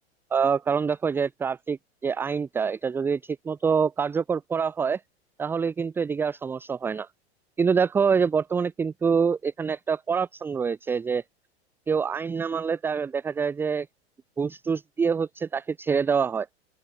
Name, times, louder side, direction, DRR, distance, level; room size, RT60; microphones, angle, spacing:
voice 1, 0.3-5.0 5.4-7.1 7.6-11.2 11.9-13.9 14.4-16.5, right 6 dB, 5° right, 0.3 m, -26 dB
open air
figure-of-eight pair, 95°, 34 cm